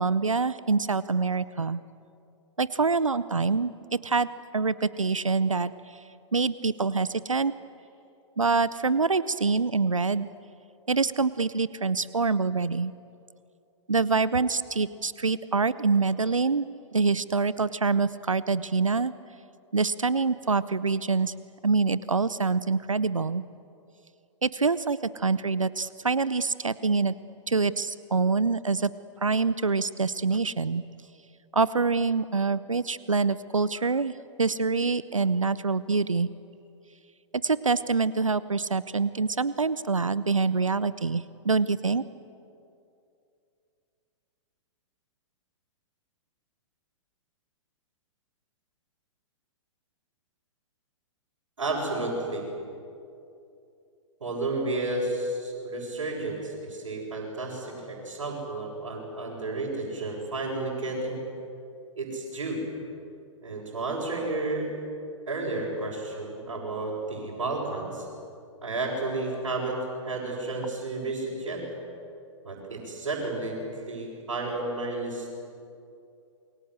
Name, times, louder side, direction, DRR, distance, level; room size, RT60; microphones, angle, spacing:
voice 1, 0.0-1.8 2.6-3.7 4.0-6.0 6.3-7.5 8.4-10.3 10.9-12.9 13.9-16.7 16.9-19.1 19.7-21.3 21.6-23.4 24.4-27.1 27.5-28.9 29.2-30.8 31.5-34.1 34.4-36.3 37.4-42.0, right 4 dB, 90° right, 17 dB, 0.7 m, -25 dB
voice 2, 51.6-52.5 54.2-61.2 62.0-62.6 63.4-64.7 65.3-68.1 68.6-71.6 72.4-73.6 73.9-75.3, right 2 dB, 75° right, -6 dB, 7.1 m, -32 dB
28.0 x 23.0 x 8.0 m, 2.6 s
figure-of-eight pair, 115°, 16 cm